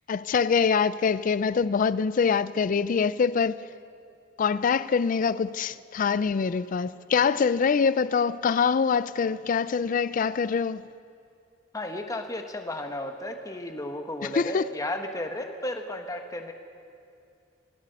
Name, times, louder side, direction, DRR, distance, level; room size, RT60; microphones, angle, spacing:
voice 1, 0.1-3.6 4.4-10.8 14.2-14.6, left 6 dB, 45° left, 0.4 m, -24 dB
voice 2, 11.7-16.5, left 1 dB, 20° left, 1.0 m, -34 dB
24.0 x 8.3 x 6.6 m
head